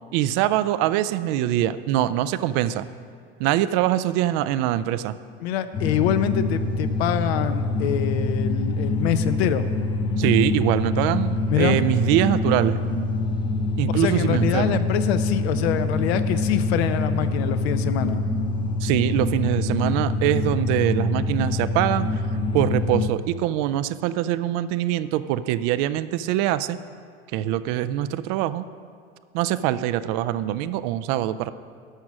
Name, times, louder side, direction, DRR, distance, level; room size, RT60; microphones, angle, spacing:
voice 1, 0.1-2.9 3.4-5.1 10.2-12.8 13.8-14.8 18.8-22.1 22.5-26.8 27.3-28.7 29.3-31.5, right 13 dB, 50° right, 14 dB, 0.5 m, -23 dB
voice 2, 5.4-9.7 11.5-11.8 13.9-18.2, left 10 dB, 70° left, 11 dB, 0.7 m, -25 dB
sound 1, 5.7-23.1, left 2 dB, 15° left, 0.6 m, -25 dB
11.0 x 6.2 x 6.0 m, 2.2 s
hypercardioid pair, 100°, 33 cm